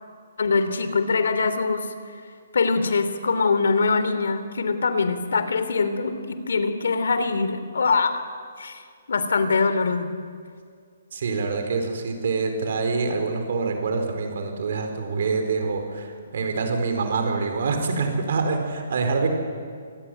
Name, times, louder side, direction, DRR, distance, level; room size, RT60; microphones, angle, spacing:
voice 1, 0.4-2.2 2.5-8.2 8.6-8.8 9.1-10.2, left 4 dB, 70° left, 11 dB, 2.9 m, -23 dB
voice 2, 11.1-19.3, right 4 dB, 45° right, 5 dB, 4.6 m, -25 dB
28.0 x 20.0 x 9.1 m, 2.1 s
hypercardioid pair, 180°, 0 cm